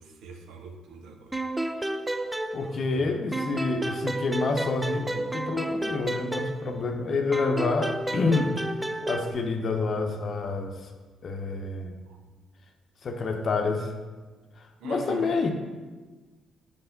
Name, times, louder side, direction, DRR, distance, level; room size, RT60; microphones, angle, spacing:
voice 1, 0.0-1.4 2.9-3.0 12.1-12.2 14.8-15.4, right 4 dB, 85° right, 3 dB, 0.7 m, -43 dB
sound 1, 1.3-3.0 3.3-6.9 7.3-9.3, right 1 dB, 10° right, 0.3 m, -31 dB
voice 2, 2.5-8.5 9.0-10.9 11.2-12.0 13.0-13.9 14.8-15.5, left 3 dB, 55° left, 5 dB, 0.7 m, -28 dB
5.6 x 3.3 x 5.7 m, 1.3 s
cardioid pair, 90°, 0 cm